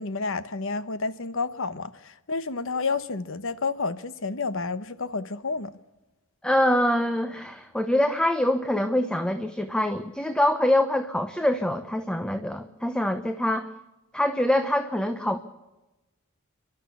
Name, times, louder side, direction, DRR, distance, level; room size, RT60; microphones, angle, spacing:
voice 1, 0.0-5.8, left 4 dB, 60° left, 1.1 m, -30 dB
voice 2, 6.4-13.7 14.1-15.4, left 1 dB, 5° left, 0.8 m, -24 dB
29.5 x 12.0 x 8.4 m
head